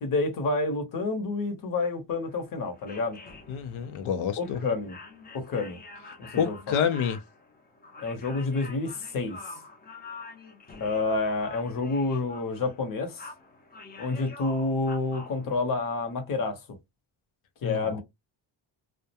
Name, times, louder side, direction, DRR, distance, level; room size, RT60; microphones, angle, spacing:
voice 1, 0.0-3.2 4.4-5.0 5.3-5.8 6.2-6.6 8.0-9.4 10.8-13.2 14.0-16.6 17.6-18.0, left 3 dB, 45° left, 0.8 m, -29 dB
sound 1, 2.2-16.2, left 3 dB, 20° left, 0.5 m, -47 dB
voice 2, 3.5-4.6 6.4-7.2 17.6-18.0, left 8 dB, 85° left, 0.6 m, -28 dB
2.3 x 2.1 x 2.7 m
cardioid pair, 135°, 48 cm